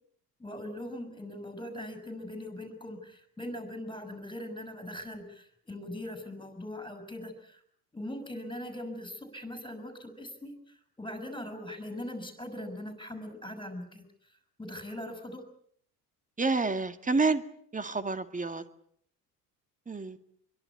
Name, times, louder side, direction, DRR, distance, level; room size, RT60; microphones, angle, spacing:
voice 1, 0.4-7.6 7.9-14.0 14.6-15.4, left 1 dB, 10° left, 8 dB, 6.2 m, -41 dB
voice 2, 16.4-17.4 17.7-18.6 19.9-20.2, right 3 dB, 15° right, 11 dB, 2.1 m, -28 dB
26.0 x 23.0 x 8.4 m, 0.65 s
figure-of-eight pair, 60°, 49 cm